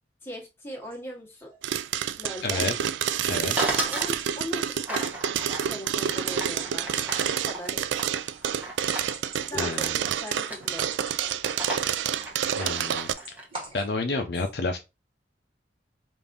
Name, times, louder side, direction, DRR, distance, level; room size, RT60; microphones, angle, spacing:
voice 1, 0.2-1.5 2.2-2.7 3.8-5.1 5.7-7.8 9.4-10.9 14.1-14.2, left 1 dB, 15° left, 1.3 m, -39 dB
sound 1, 0.8-1.0 1.4-1.6 1.9-2.0 2.5-3.7 4.0-4.7 5.1-5.6 5.9-12.9 13.1-13.9, equal, 30° right, 1.5 m, -44 dB
sound 2, 1.6-13.1, right 9 dB, 80° right, 0.3 m, -28 dB
voice 2, 2.4-2.7 3.2-3.5 9.6-10.0 12.6-13.1 13.7-14.8, left 3 dB, 60° left, 0.5 m, -29 dB
sound 3, 3.6-4.1 4.8-9.1 9.7-10.1 10.4-10.9 11.2-13.5, right 1 dB, 10° right, 1.0 m, -34 dB
5.1 x 2.6 x 2.5 m
head